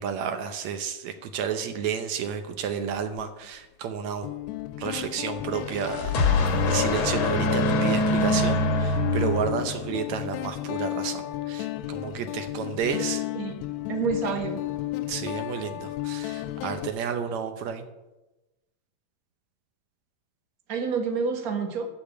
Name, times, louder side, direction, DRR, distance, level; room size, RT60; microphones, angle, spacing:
voice 1, 0.0-4.3 4.8-13.3 15.1-17.9, right 7 dB, 70° right, 8 dB, 1.9 m, -31 dB
Guitar, 3.0-3.2 4.2-16.9, left 15 dB, 80° left, 1.6 m, -33 dB
sound 1, 5.5-10.0, left 2 dB, 60° left, 2.2 m, -24 dB
voice 2, 13.9-14.6 20.7-21.9, right 5 dB, 50° right, 4 dB, 1.0 m, -28 dB
13.5 x 5.2 x 8.9 m, 1.0 s
omnidirectional pair, 3.7 m